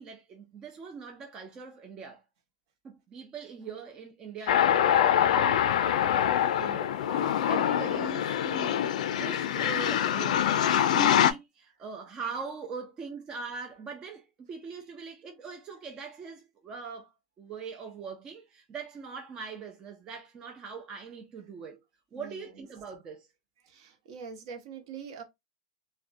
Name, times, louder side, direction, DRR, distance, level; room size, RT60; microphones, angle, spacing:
voice 1, 0.0-2.2 2.8-10.4 10.9-17.1 17.4-21.8 22.1-23.3, right 5 dB, 20° right, 0.4 m, -41 dB
sound 1, 4.5-11.3, left 10 dB, 75° left, 0.3 m, -25 dB
voice 2, 22.1-22.6 23.6-25.2, right 6 dB, 55° right, 0.7 m, -44 dB
2.4 x 2.1 x 2.4 m
supercardioid pair, 160°, 4 cm